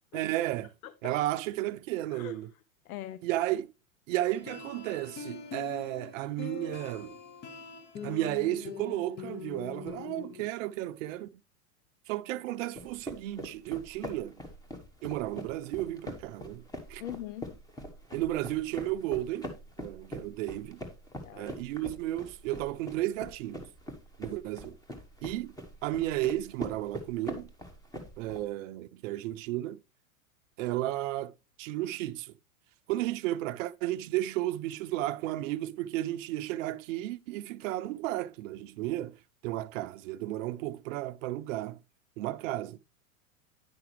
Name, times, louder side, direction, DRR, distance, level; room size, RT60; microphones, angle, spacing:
voice 1, 0.1-0.7 1.0-2.5 3.2-3.7 4.1-7.1 8.0-11.3 12.1-14.4 15.0-16.6 16.9-17.0 18.1-19.5 19.8-20.8 21.3-23.7 24.2-24.8 25.2-25.6 25.8-27.5 28.2-29.8 30.6-31.3 31.6-32.3 32.9-39.2 39.4-41.8 42.2-42.8, right 15 dB, 65° right, 0.6 m, -33 dB
voice 2, 0.8-1.1 2.1-2.4 2.9-3.3 17.0-17.5 21.2-21.6, left 12 dB, 80° left, 0.6 m, -41 dB
sound 1, 4.3-10.4, left 7 dB, 25° left, 0.7 m, -43 dB
sound 2, 12.8-28.4, equal, 10° left, 1.3 m, -43 dB
9.4 x 5.8 x 3.2 m
hypercardioid pair, 115°, 42 cm